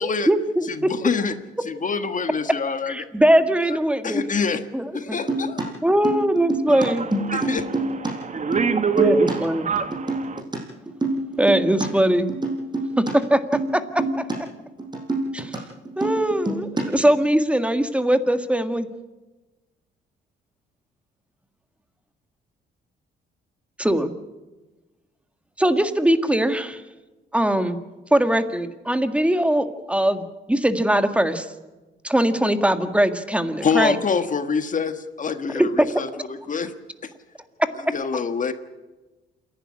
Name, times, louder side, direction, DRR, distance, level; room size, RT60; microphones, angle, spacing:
voice 1, 0.0-0.9 2.9-4.2 4.7-5.2 5.8-7.1 9.0-9.7 11.4-12.3 13.0-14.3 15.3-15.6 16.0-18.9 23.8-24.1 25.6-26.8 27.3-27.8 28.1-30.2 30.5-31.5 32.0-33.9 35.6-35.9, right 1 dB, 5° right, 1.7 m, -21 dB
voice 2, 0.7-1.3 1.6-3.1 4.0-4.6 4.9-5.7 7.3-7.7 33.6-36.7 37.0-37.1 37.9-38.5, left 5 dB, 40° left, 1.5 m, -25 dB
sound 1, 5.1-8.1 8.4-9.3 9.8-10.6 10.9-11.9 12.3-13.1 13.5-13.7 14.0-14.4 14.6-15.6 15.8-17.1, right 2 dB, 20° right, 5.9 m, -26 dB
voice 3, 6.7-7.6 8.0-10.4, right 5 dB, 40° right, 1.6 m, -25 dB
28.0 x 11.5 x 9.8 m
cardioid pair, 90°, 20 cm